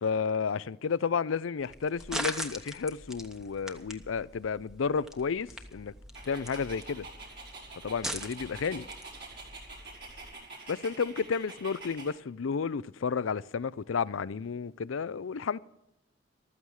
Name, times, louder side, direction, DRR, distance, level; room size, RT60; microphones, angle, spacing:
voice 1, 0.0-5.9 6.3-7.1 7.8-8.9 10.7-15.6, left 5 dB, 90° left, 0.5 m, -32 dB
sound 1, 1.6-10.3, equal, 5° right, 1.1 m, -42 dB
Dog, 6.1-12.1, right 3 dB, 60° right, 5.2 m, -46 dB
14.5 x 13.5 x 4.9 m
head